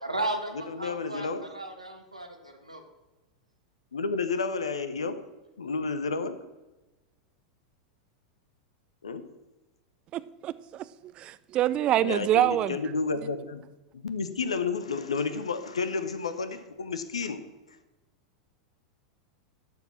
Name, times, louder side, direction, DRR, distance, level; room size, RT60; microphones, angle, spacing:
voice 1, 0.0-2.8, right 2 dB, 90° right, 1.4 m, -35 dB
voice 2, 0.7-1.4 3.9-5.2 5.6-6.4 9.0-9.2 12.0-13.6 13.9-17.4, left 4 dB, 70° left, 0.9 m, -31 dB
voice 3, 10.1-12.8, right 12 dB, 30° right, 0.4 m, -26 dB
11.5 x 4.7 x 7.5 m
figure-of-eight pair, 90°, 3 cm